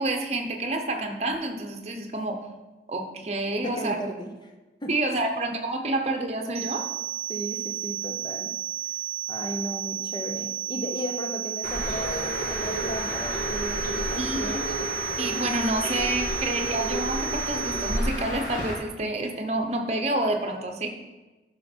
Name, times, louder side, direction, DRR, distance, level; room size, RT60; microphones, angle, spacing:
voice 1, 0.0-2.4 2.9-4.0 4.9-6.8 14.2-14.6 15.2-20.9, right 2 dB, 35° right, 4 dB, 0.9 m, -28 dB
voice 2, 3.5-4.3 4.8-5.0 7.3-8.6 9.3-14.8, right 1 dB, 25° left, 4 dB, 0.9 m, -35 dB
sound 1, 6.5-18.0, right 10 dB, 55° right, 0.4 m, -33 dB
Bird, 11.6-18.7, equal, 50° left, 1.7 m, -31 dB
11.0 x 5.8 x 4.5 m, 1.1 s
head